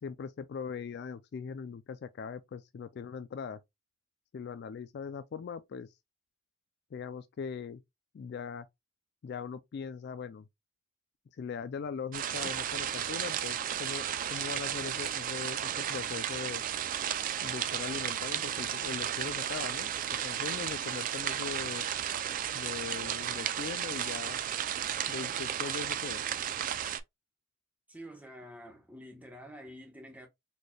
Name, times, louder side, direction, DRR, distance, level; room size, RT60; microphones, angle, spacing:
voice 1, 0.0-3.6 4.3-5.9 6.9-7.8 8.1-8.7 9.2-10.5 11.4-16.6 17.4-19.9 20.2-21.8 22.5-24.4 25.1-26.2, left 6 dB, 50° left, 0.3 m, -40 dB
sound 1, 12.1-27.0, right 10 dB, 40° right, 0.3 m, -34 dB
voice 2, 27.9-30.3, equal, 5° right, 1.0 m, -48 dB
4.2 x 3.2 x 2.2 m
head